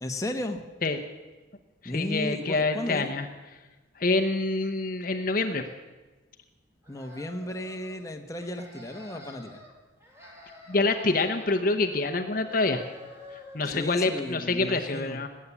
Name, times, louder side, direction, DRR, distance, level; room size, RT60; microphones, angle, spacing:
voice 1, 0.0-0.6 1.8-3.1 6.9-9.6 13.6-15.2, left 1 dB, 15° left, 4 dB, 1.2 m, -34 dB
voice 2, 1.8-3.2 4.0-5.7 10.7-12.8 13.5-15.3, left 3 dB, 45° left, 6 dB, 0.9 m, -26 dB
sound 1, 6.8-8.0 8.3-9.7 10.0-12.2 12.4-14.4, left 1 dB, 15° right, 3.0 m, -49 dB
19.5 x 8.6 x 8.5 m, 1.2 s
head